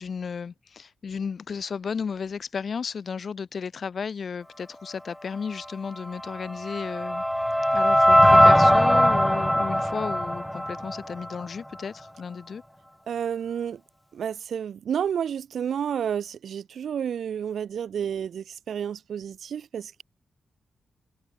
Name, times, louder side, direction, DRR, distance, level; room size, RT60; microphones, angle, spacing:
voice 1, 0.0-7.2 7.7-12.6, left 6 dB, 60° left, 6.4 m, -34 dB
sound 1, 6.3-11.4, equal, 5° left, 0.3 m, -20 dB
voice 2, 13.1-13.8 14.1-20.0, right 8 dB, 75° right, 4.7 m, -30 dB
cardioid pair, 70°, 0 cm